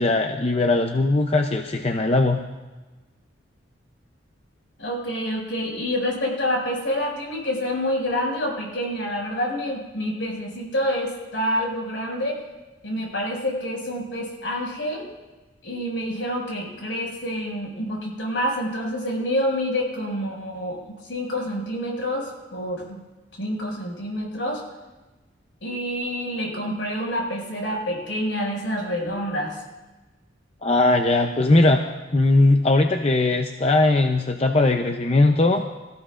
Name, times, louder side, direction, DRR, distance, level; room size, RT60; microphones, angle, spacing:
voice 1, 0.0-2.4 30.6-31.8 32.1-35.6, left 2 dB, 30° left, 5 dB, 0.6 m, -19 dB
voice 2, 4.8-12.4 12.8-15.1 15.6-20.8 21.1-23.0 23.4-24.6 25.6-29.6, equal, 75° left, -1 dB, 6.0 m, -27 dB
26.5 x 15.0 x 2.5 m, 1.2 s
head